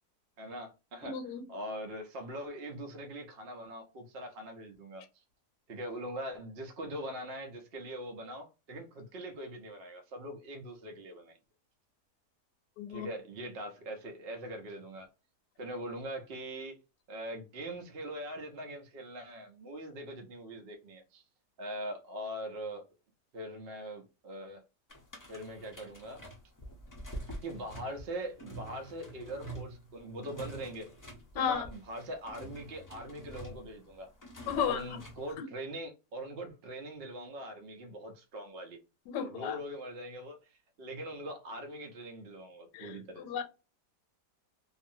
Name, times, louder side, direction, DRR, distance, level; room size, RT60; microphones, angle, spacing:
voice 1, 0.4-1.2 1.5-5.2 5.7-11.4 12.9-15.1 15.6-16.8 17.1-21.2 21.6-22.9 23.3-24.6 25.3-26.2 27.4-30.9 31.3-34.1 34.5-38.8 39.2-43.3, right 1 dB, 65° right, 0.6 m, -42 dB
voice 2, 1.0-1.5 12.8-13.1 31.3-31.7 34.5-35.0 35.4-35.5 39.1-39.6 42.7-43.4, left 8 dB, 85° left, 1.2 m, -34 dB
sound 1, 24.9-35.3, right 1 dB, 30° left, 0.3 m, -47 dB
2.6 x 2.4 x 2.6 m
omnidirectional pair, 1.8 m